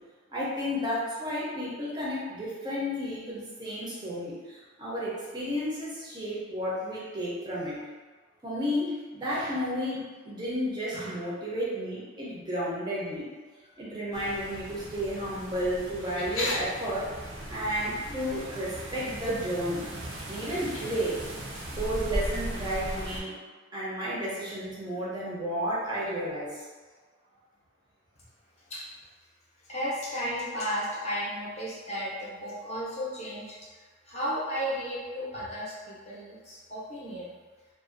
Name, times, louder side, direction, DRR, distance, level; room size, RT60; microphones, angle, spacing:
voice 1, 0.3-7.8 8.4-13.3 13.8-17.1 17.5-19.8 20.3-21.2 21.7-23.3 23.7-26.5, equal, 20° right, -8 dB, 0.5 m, -32 dB
sound 1, 14.1-23.2, right 1 dB, 85° right, 0.5 m, -38 dB
sound 2, 16.0-16.6 18.3-18.5 18.8-19.3 20.3-21.3, left 2 dB, 85° left, 0.6 m, -35 dB
voice 2, 29.7-33.6 34.0-37.3, equal, 35° left, -7 dB, 0.6 m, -34 dB
2.4 x 2.2 x 2.5 m, 1.4 s
head